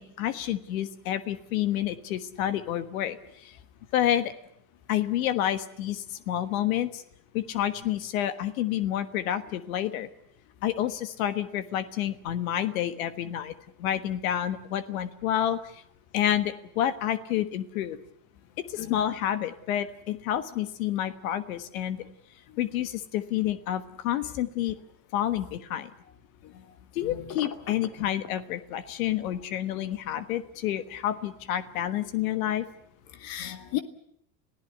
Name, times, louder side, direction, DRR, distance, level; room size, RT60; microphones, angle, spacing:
voice 1, 0.0-3.2 3.4-3.5 3.9-4.3 4.9-7.0 7.3-10.1 10.6-13.5 13.8-15.8 16.1-18.0 18.7-22.0 22.6-24.8 25.1-25.9 26.9-32.6, left 11 dB, 90° left, 12 dB, 1.5 m, -29 dB
voice 2, 18.8-19.1 26.4-26.5 27.0-27.4 28.0-28.1 33.2-33.8, left 13 dB, 75° left, 9 dB, 2.0 m, -35 dB
Telephone, 27.3-28.4, left 5 dB, 50° left, 3.6 m, -39 dB
26.5 x 16.0 x 8.2 m, 0.74 s
supercardioid pair, 90°, 41 cm